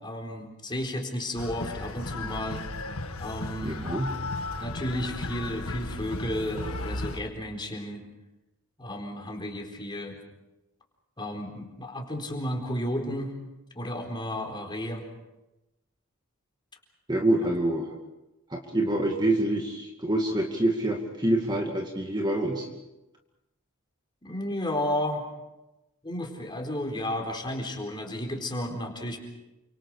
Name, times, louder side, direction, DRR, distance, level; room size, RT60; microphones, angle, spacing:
voice 1, 0.0-2.6 3.2-3.8 4.6-8.0 8.8-10.2 11.2-13.3 13.7-15.0 17.4-17.5 24.2-25.3 26.0-29.2, left 1 dB, 20° left, 2 dB, 4.3 m, -33 dB
sound 1, 1.4-7.2, left 2 dB, 75° left, 1.6 m, -35 dB
voice 2, 3.6-4.1 17.1-17.9 18.5-22.7, right 1 dB, 20° right, 1 dB, 2.3 m, -26 dB
29.5 x 26.0 x 5.0 m, 0.98 s
head